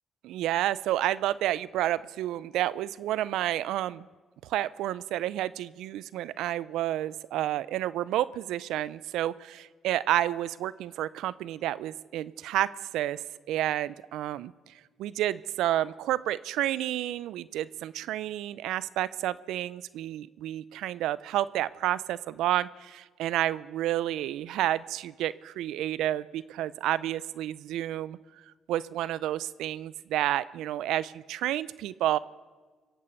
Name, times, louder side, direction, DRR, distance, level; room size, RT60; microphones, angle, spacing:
voice 1, 0.2-4.0 4.4-13.2 13.5-14.5 15.0-28.2 28.7-32.2, right 13 dB, 90° right, 19 dB, 0.4 m, -30 dB
23.5 x 8.5 x 7.2 m, 1.4 s
cardioid pair, 90°, 0 cm